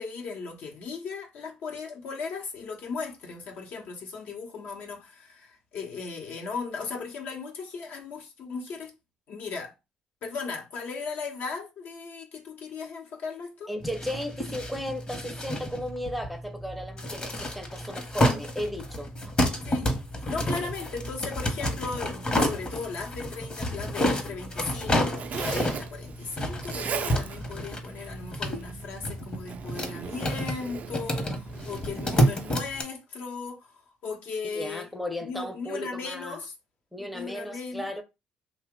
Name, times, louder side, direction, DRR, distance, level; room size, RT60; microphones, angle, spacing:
voice 1, 0.0-8.9 9.3-9.7 10.2-13.7 19.7-19.9 20.3-34.9 35.2-36.5 37.0-37.9, left 4 dB, 70° left, 0.9 m, -37 dB
voice 2, 13.7-19.5 20.4-20.5 34.4-36.4 36.9-38.0, equal, ahead, 0.6 m, -35 dB
sound 1, 13.8-32.8, equal, 30° left, 0.9 m, -30 dB
Zipper (clothing), 24.4-32.6, right 7 dB, 50° right, 0.3 m, -39 dB
2.8 x 2.2 x 3.6 m
cardioid pair, 85°, 3 cm